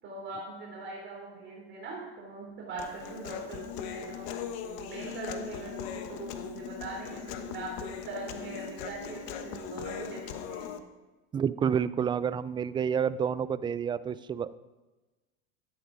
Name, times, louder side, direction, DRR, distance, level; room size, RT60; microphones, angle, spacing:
voice 1, 0.0-4.3 4.6-10.2 10.5-10.7, right 3 dB, 35° right, -3 dB, 3.6 m, -41 dB
Human voice, 2.8-10.8, left 8 dB, 55° left, 1.2 m, -39 dB
voice 2, 11.3-14.6, right 7 dB, 15° right, 16 dB, 0.3 m, -29 dB
13.0 x 10.0 x 5.1 m, 1.2 s
supercardioid pair, 110°, 33 cm